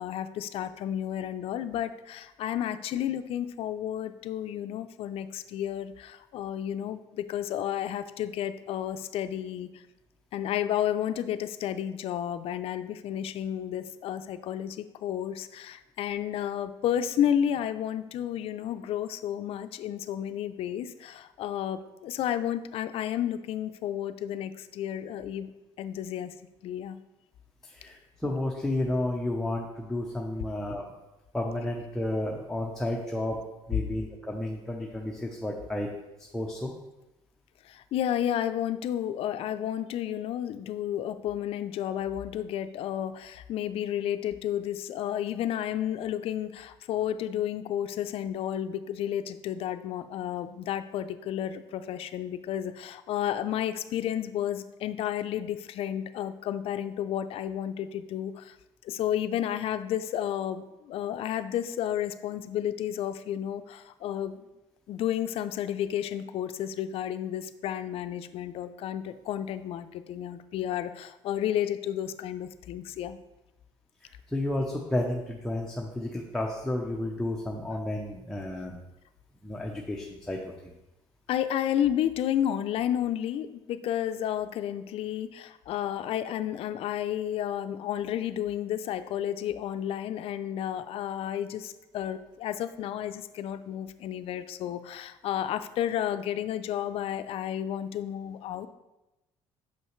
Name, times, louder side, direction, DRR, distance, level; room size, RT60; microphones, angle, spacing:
voice 1, 0.0-9.8 10.3-25.5 25.8-26.3 26.6-27.0 37.6-58.6 58.8-64.4 64.9-73.2 81.3-98.7, left 10 dB, 60° left, 11 dB, 0.4 m, -31 dB
voice 2, 27.6-30.9 31.3-33.4 33.7-35.9 36.3-36.7 74.3-78.8 79.4-80.4 80.6-80.7, left 1 dB, 5° left, -2 dB, 0.6 m, -31 dB
6.4 x 5.5 x 3.1 m, 0.98 s
cardioid pair, 115°, 11 cm